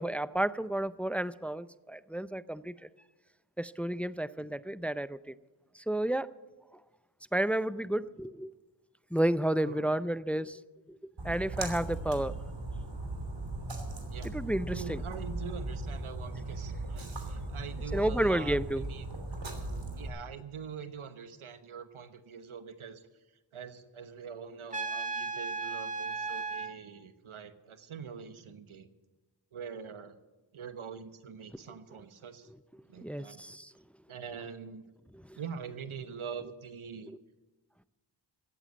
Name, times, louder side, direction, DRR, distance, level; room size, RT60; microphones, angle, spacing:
voice 1, 0.0-2.7 3.6-5.2 5.9-6.3 7.3-8.5 9.1-10.6 10.9-11.0 11.2-12.3 14.3-15.0 17.9-18.8 33.0-33.7, right 1 dB, 5° left, 15 dB, 0.5 m, -31 dB
Splash splatter, 11.2-20.1, right 2 dB, 60° right, 3.1 m, -38 dB
voice 2, 14.7-19.1 19.9-23.0 23.5-28.9 29.5-30.2 30.5-32.5 32.9-33.4 34.1-34.9 35.4-37.1, right 6 dB, 80° right, 10 dB, 1.1 m, -44 dB
Trumpet, 24.7-26.7, right 4 dB, 15° right, 1.8 m, -35 dB
16.0 x 8.3 x 7.7 m, 1.1 s
cardioid pair, 45°, 49 cm